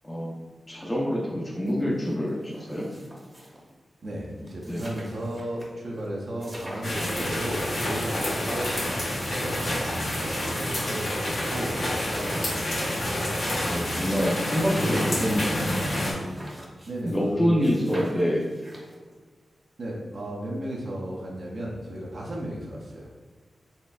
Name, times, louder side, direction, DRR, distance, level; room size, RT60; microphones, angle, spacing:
voice 1, 0.0-0.3 0.7-2.9 4.7-4.9 13.7-15.8 17.0-18.4, equal, 15° left, -4 dB, 0.6 m, -26 dB
sound 1, 1.7-1.8 2.0-3.7 4.1-4.2 4.4-5.6 6.0-6.1 6.4-7.2 7.6-8.5 9.2-10.8 11.2-11.3 11.6-17.3 17.6-19.1, right 1 dB, 20° right, 0.8 m, -45 dB
voice 2, 4.0-8.7 9.4-13.2 16.9-18.0 19.8-23.1, right 1 dB, 60° right, -4 dB, 0.6 m, -35 dB
sound 2, 6.8-16.1, left 1 dB, 65° left, 1.3 m, -28 dB
4.2 x 3.2 x 2.4 m, 1.4 s
wide cardioid pair, 115°, 0 cm